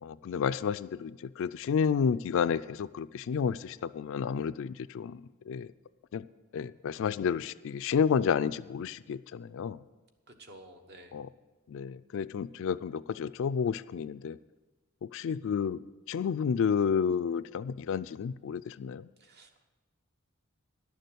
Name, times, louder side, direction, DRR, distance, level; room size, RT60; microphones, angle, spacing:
voice 1, 0.0-5.2 5.5-5.7 6.1-6.3 6.5-9.8 11.1-11.3 11.7-14.4 15.0-15.8 16.1-19.1, left 6 dB, 65° left, 15 dB, 0.3 m, -31 dB
voice 2, 10.3-11.2 19.2-19.6, right 1 dB, 50° right, 5 dB, 1.2 m, -52 dB
11.5 x 6.8 x 7.9 m, 1.2 s
head